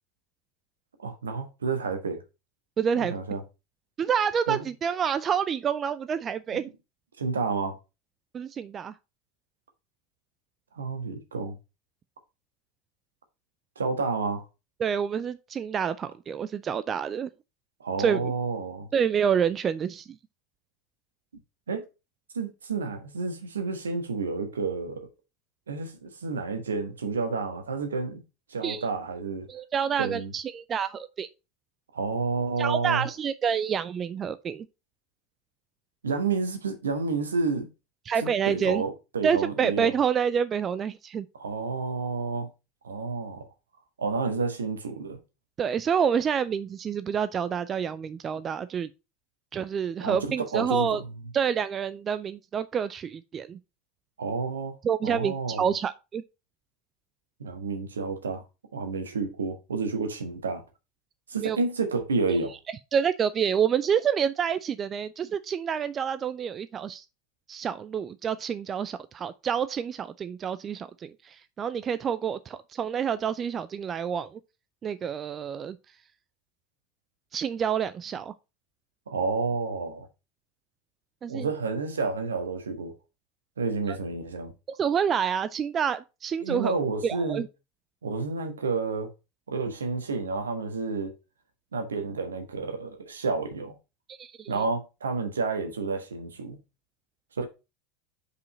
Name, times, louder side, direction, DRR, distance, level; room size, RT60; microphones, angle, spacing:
voice 1, 1.0-2.2 2.9-3.4 4.5-4.7 6.5-6.6 7.2-7.7 10.7-11.5 13.8-14.4 17.8-18.9 21.7-21.8 22.3-25.1 25.7-28.2 28.5-29.5 30.0-30.3 31.9-33.1 36.0-37.7 38.2-39.9 41.4-42.5 42.8-43.5 44.0-45.2 50.0-50.9 54.2-54.7 55.0-55.7 57.4-58.4 58.7-60.6 61.3-62.5 79.1-80.1 81.3-82.9 83.6-84.5 86.4-87.4 88.0-89.1 89.5-91.1 91.7-93.7 94.5-96.6 97.4-97.5, right 4 dB, 75° right, 1.3 m, -30 dB
voice 2, 2.8-3.2 4.0-6.7 8.3-8.9 14.8-17.3 18.0-18.3 18.9-20.2 28.6-28.8 29.5-31.3 32.6-34.7 38.1-38.8 39.2-41.3 45.6-48.9 49.5-51.0 51.3-53.6 54.8-56.2 61.4-61.6 62.3-62.4 62.9-67.0 67.5-74.4 74.8-75.8 77.3-78.3 81.2-81.5 84.8-86.7 87.0-87.5 94.2-94.5, right 7 dB, 30° right, 0.4 m, -28 dB
5.5 x 5.0 x 5.1 m
figure-of-eight pair, 75°, 0 cm